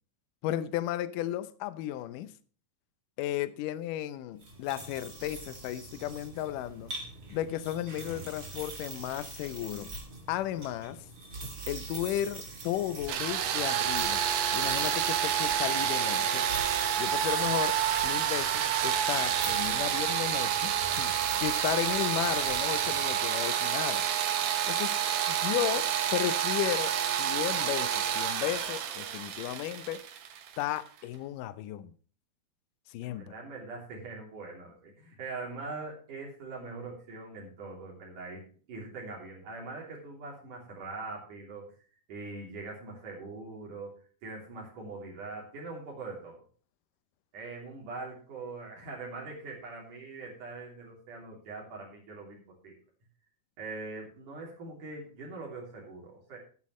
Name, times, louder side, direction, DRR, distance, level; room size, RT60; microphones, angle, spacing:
voice 1, 0.4-2.3 3.2-6.9 7.3-9.9 10.3-11.0 11.7-14.2 14.5-16.5 17.0-17.8 18.0-21.1 21.4-24.0 24.7-25.0 25.3-26.9 27.2-30.0 30.6-31.9 32.9-33.3, left 13 dB, 75° left, 2.2 m, -34 dB
sound 1, 4.4-23.2, right 2 dB, 30° right, 2.6 m, -44 dB
sound 2, 13.1-30.8, right 9 dB, 85° right, 3.2 m, -29 dB
voice 2, 33.0-41.7 42.1-43.9 44.2-46.4 47.3-52.7 53.6-56.4, right 3 dB, 60° right, 4.6 m, -42 dB
14.0 x 9.6 x 3.1 m
omnidirectional pair, 4.1 m